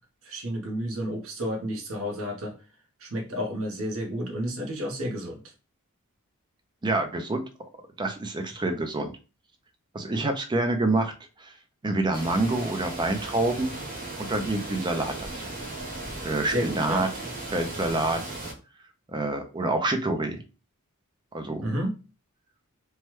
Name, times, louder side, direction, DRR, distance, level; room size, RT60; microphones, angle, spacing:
voice 1, 0.2-2.6 3.0-5.4 16.5-17.1 21.6-22.0, equal, 65° right, 2 dB, 0.9 m, -31 dB
voice 2, 6.8-7.4 8.0-9.1 9.9-11.1 11.4-11.5 11.8-13.7 14.2-15.5 16.2-17.1 17.5-18.2 19.1-20.4 21.3-21.6, right 2 dB, 20° right, 6 dB, 0.4 m, -27 dB
sound 1, 12.1-18.5, right 2 dB, 40° right, 0.8 m, -36 dB
3.1 x 2.2 x 3.0 m, 0.33 s
head